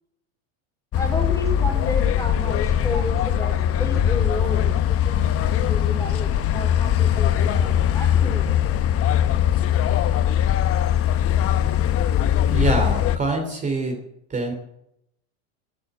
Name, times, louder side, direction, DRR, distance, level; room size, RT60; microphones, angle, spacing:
sound 1, 0.9-13.2, left 10 dB, 35° left, 1.1 m, -21 dB
voice 1, 1.0-8.6, left 1 dB, 10° left, 2 dB, 4.3 m, -32 dB
voice 2, 12.5-14.0 14.3-14.5, right 3 dB, 20° right, 2 dB, 3.1 m, -25 dB
12.0 x 11.5 x 9.3 m, 0.77 s
supercardioid pair, 130°, 40 cm